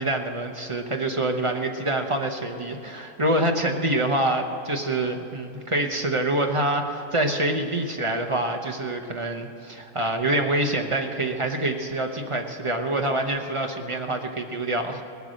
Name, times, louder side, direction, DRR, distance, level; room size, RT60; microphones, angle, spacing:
voice 1, 0.0-15.0, right 1 dB, 35° right, 3 dB, 0.5 m, -26 dB
19.0 x 8.1 x 6.4 m, 3.0 s
omnidirectional pair, 1.8 m